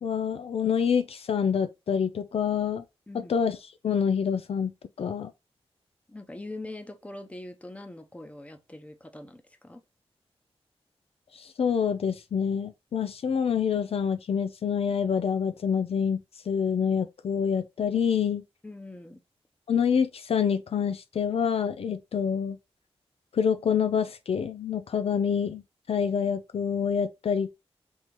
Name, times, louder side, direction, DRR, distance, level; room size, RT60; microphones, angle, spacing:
voice 1, 0.0-2.8 3.3-3.6 3.8-4.7 5.0-5.3 11.3-16.2 16.5-18.4 19.7-22.6 23.3-25.6 25.9-27.5, left 7 dB, 70° left, 0.4 m, -26 dB
voice 2, 6.1-9.8 18.6-19.2, left 2 dB, 15° left, 0.8 m, -42 dB
3.6 x 2.9 x 4.5 m
wide cardioid pair, 80°, 11 cm